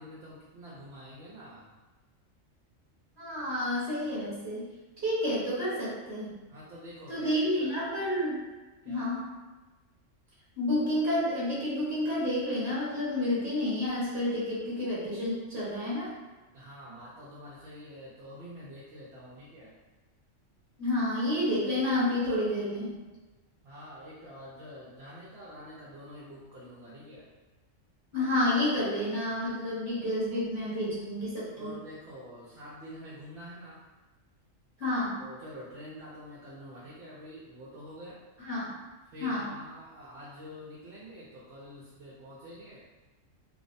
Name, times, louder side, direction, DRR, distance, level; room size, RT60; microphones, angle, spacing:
voice 1, 0.0-1.7 6.5-7.8 8.8-9.1 16.5-19.7 23.6-27.3 31.6-33.8 35.2-38.2 39.0-42.8, equal, 65° right, -8 dB, 0.7 m, -47 dB
voice 2, 3.2-4.7 5.0-6.3 7.1-8.4 8.8-9.2 10.6-16.1 20.8-22.9 28.1-31.7 34.8-35.2 38.4-38.7 39.2-39.5, left 1 dB, 15° right, -9 dB, 0.9 m, -30 dB
2.6 x 2.0 x 2.5 m, 1.2 s
omnidirectional pair, 1.3 m